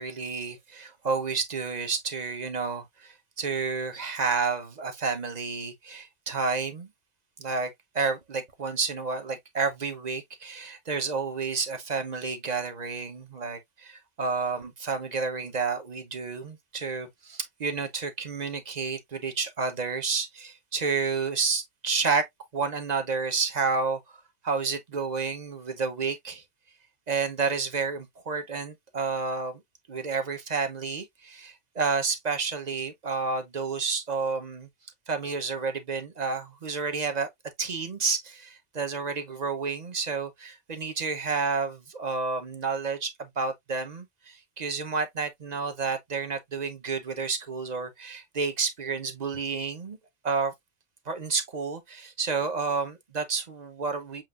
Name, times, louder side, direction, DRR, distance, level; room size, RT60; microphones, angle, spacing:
voice 1, 0.0-6.9 7.4-22.3 22.5-24.0 24.4-26.4 27.1-29.6 29.9-34.7 35.1-37.3 37.6-50.0 50.2-50.5 51.1-54.2, right 4 dB, 40° right, 0.9 m, -30 dB
7.6 x 2.6 x 2.4 m
omnidirectional pair, 1.2 m